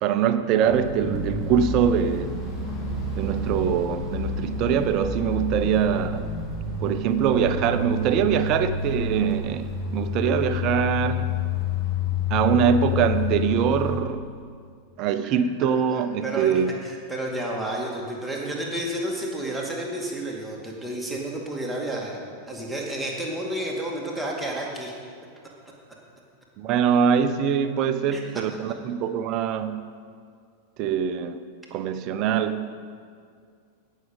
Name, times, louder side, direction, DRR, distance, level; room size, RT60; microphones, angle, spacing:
voice 1, 0.0-2.4 3.2-6.3 6.8-11.3 12.3-14.2 15.0-16.7 26.6-29.9 30.8-31.4 31.7-32.7, right 8 dB, 40° right, 10 dB, 0.7 m, -23 dB
sound 1, 0.6-14.0, left 4 dB, 15° left, 2.7 m, -29 dB
voice 2, 16.0-22.2 22.5-24.9 28.1-28.2, right 1 dB, 5° right, -3 dB, 2.2 m, -31 dB
17.0 x 6.5 x 5.4 m, 2.2 s
figure-of-eight pair, 90°, 0 cm